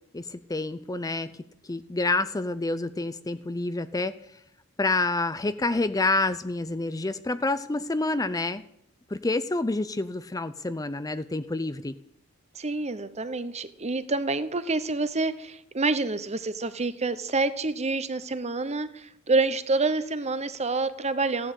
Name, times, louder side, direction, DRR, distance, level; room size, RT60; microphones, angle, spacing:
voice 1, 0.1-1.4 1.7-4.1 4.8-8.6 9.1-11.9, left 2 dB, 15° left, 13 dB, 0.5 m, -28 dB
voice 2, 12.5-21.5, right 3 dB, 30° right, 13 dB, 1.0 m, -27 dB
15.5 x 11.5 x 8.2 m, 0.78 s
head